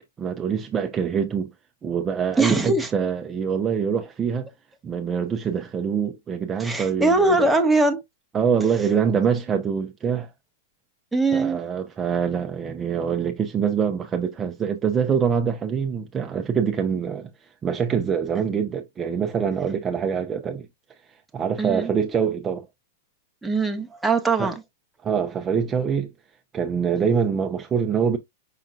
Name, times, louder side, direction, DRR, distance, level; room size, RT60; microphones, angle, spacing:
voice 1, 0.2-1.5 1.8-4.5 4.8-7.5 8.3-10.3 11.3-20.7 21.1-22.7 24.4-24.5 25.0-26.1 26.5-28.2, right 7 dB, 20° right, 0.6 m, -25 dB
voice 2, 2.4-2.9 6.6-8.0 11.1-11.6 21.6-21.9 23.4-24.5, right 2 dB, 5° right, 1.0 m, -21 dB
5.6 x 3.7 x 2.4 m
hypercardioid pair, 125°, 0 cm